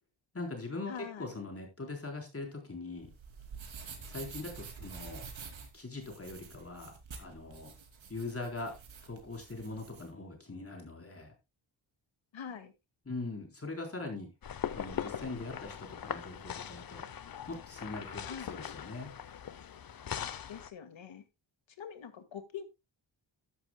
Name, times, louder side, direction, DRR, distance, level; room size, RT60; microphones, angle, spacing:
voice 1, 0.3-0.9 1.2-3.1 4.1-5.2 5.7-7.7 8.1-8.7 9.0-11.3 13.1-14.3 14.7-17.0 17.5-19.1, left 3 dB, 30° left, 3.9 m, -41 dB
voice 2, 0.9-1.3 12.3-12.7 18.2-18.6 20.5-21.2 21.8-22.6, left 7 dB, 75° left, 2.0 m, -44 dB
sound 1, 3.0-10.1, right 6 dB, 75° right, 2.9 m, -48 dB
sound 2, 14.4-20.7, left 9 dB, 50° left, 0.8 m, -41 dB
14.0 x 11.0 x 2.2 m
wide cardioid pair, 120°, 47 cm